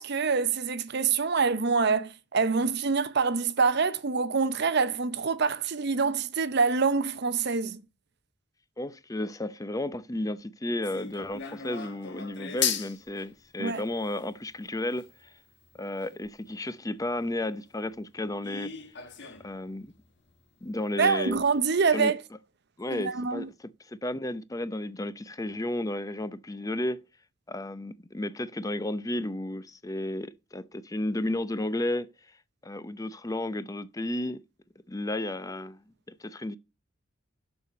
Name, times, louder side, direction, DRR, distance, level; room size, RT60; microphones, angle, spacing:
voice 1, 0.0-7.8 13.6-13.8 21.0-22.2 22.9-23.5, right 5 dB, 55° right, 0.7 m, -26 dB
voice 2, 8.8-15.3 15.8-18.7 19.4-19.9 20.6-21.4 21.9-22.1 22.8-27.0 27.5-32.1 32.6-34.4 34.9-35.8 36.2-36.6, left 1 dB, 15° left, 0.6 m, -33 dB
sound 1, 10.8-16.7 17.2-17.3 17.7-17.8 18.4-19.6 19.9-20.0 20.3-20.4 21.0-21.1 21.3-21.4, left 8 dB, 60° left, 1.5 m, -37 dB
6.9 x 6.8 x 7.8 m
head